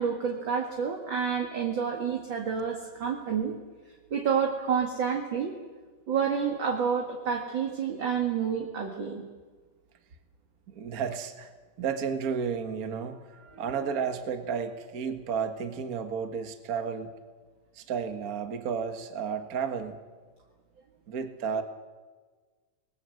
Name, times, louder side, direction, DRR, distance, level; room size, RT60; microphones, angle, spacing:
voice 1, 0.0-3.5 4.1-5.5 6.1-9.2, right 7 dB, 40° right, 2 dB, 2.0 m, -29 dB
voice 2, 10.7-11.5 11.8-17.1 17.7-20.0 21.1-21.6, right 6 dB, 70° right, 8 dB, 0.8 m, -32 dB
27.5 x 20.5 x 7.8 m, 1.4 s
omnidirectional pair, 4.1 m